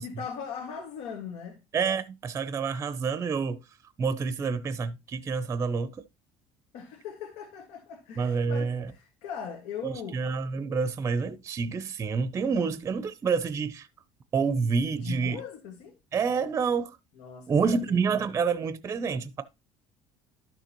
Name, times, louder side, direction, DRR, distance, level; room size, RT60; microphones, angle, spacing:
voice 1, 0.0-1.6 6.7-10.2 15.0-16.0 17.2-18.2, left 7 dB, 90° left, 2.0 m, -40 dB
voice 2, 1.7-3.6 4.0-5.9 8.2-8.9 9.8-13.9 14.3-15.4 16.1-17.0 17.5-19.4, right 5 dB, 20° right, 0.6 m, -28 dB
12.0 x 6.6 x 3.0 m
cardioid pair, 165°, 12 cm